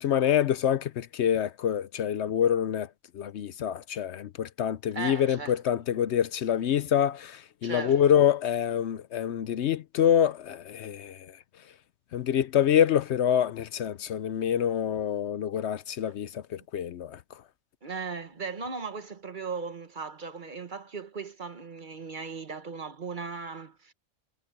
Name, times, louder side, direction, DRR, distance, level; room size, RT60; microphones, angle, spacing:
voice 1, 0.0-2.9 3.1-11.3 12.1-17.2, left 9 dB, 70° left, 0.9 m, -26 dB
voice 2, 4.9-5.6 7.6-8.0 17.8-23.9, right 4 dB, 40° right, 1.2 m, -37 dB
omnidirectional pair, 1.3 m